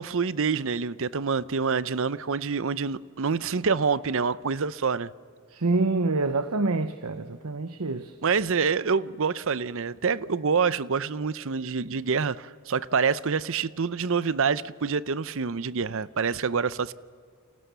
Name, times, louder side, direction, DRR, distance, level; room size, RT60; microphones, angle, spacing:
voice 1, 0.0-5.1 8.2-16.9, right 5 dB, 60° right, 0.7 m, -26 dB
voice 2, 5.5-8.1, right 3 dB, 85° right, 0.9 m, -26 dB
29.5 x 28.0 x 6.9 m
head